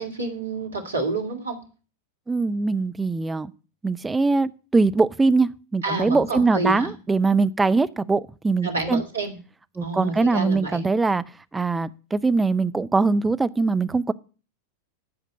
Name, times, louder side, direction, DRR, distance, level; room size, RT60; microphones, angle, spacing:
voice 1, 0.0-1.6 5.8-6.9 8.6-9.4 9.8-10.9, right 3 dB, 70° right, 2.6 m, -29 dB
voice 2, 2.3-3.5 3.8-9.0 9.8-11.2 11.5-14.1, right 3 dB, 10° right, 0.5 m, -22 dB
10.5 x 5.1 x 8.3 m
figure-of-eight pair, 90°, 0 cm